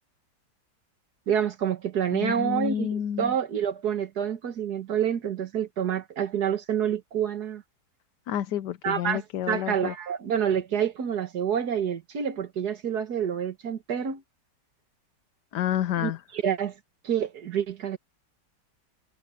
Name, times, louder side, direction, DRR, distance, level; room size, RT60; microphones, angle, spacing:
voice 1, 1.3-7.6 8.8-14.2 16.0-16.7 17.0-18.0, right 8 dB, 65° right, 1.9 m, -28 dB
voice 2, 2.1-3.3 8.3-9.9 15.5-16.2, left 10 dB, 75° left, 1.4 m, -29 dB
omnidirectional pair, 1.9 m